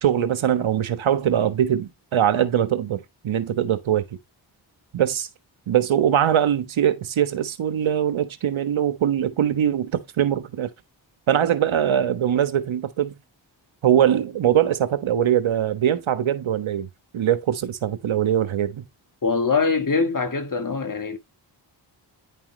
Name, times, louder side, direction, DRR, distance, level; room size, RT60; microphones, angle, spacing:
voice 1, 0.0-4.0 4.9-5.3 5.7-10.7 11.3-13.1 13.8-16.9 17.1-18.8, right 10 dB, 85° right, 1.3 m, -22 dB
voice 2, 19.2-21.2, left 4 dB, 45° left, 1.7 m, -23 dB
10.0 x 5.7 x 3.3 m
cardioid pair, 60°, 46 cm